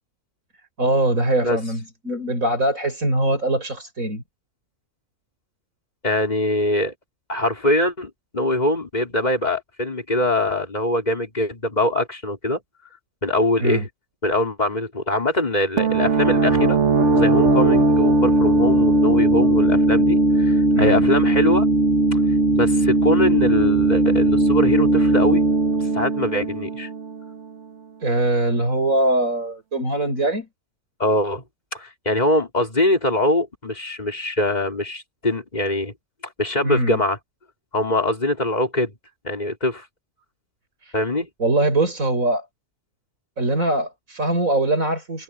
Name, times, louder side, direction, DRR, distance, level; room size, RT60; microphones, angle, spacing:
voice 1, 0.8-4.2 13.6-13.8 20.7-21.0 28.0-30.5 36.6-37.0 40.8-40.9 41.4-42.4 43.4-45.2, right 1 dB, 85° right, 6.4 m, -22 dB
voice 2, 6.0-6.9 7.3-12.6 13.2-13.9 14.2-16.8 17.1-21.7 22.5-25.4 25.9-26.9 31.0-31.4 31.7-35.9 36.4-37.2 37.7-38.9 39.2-39.8 40.9-41.3, left 1 dB, 30° left, 4.3 m, -23 dB
sound 1, 15.8-27.3, right 2 dB, 60° right, 1.9 m, -18 dB
omnidirectional pair, 1.4 m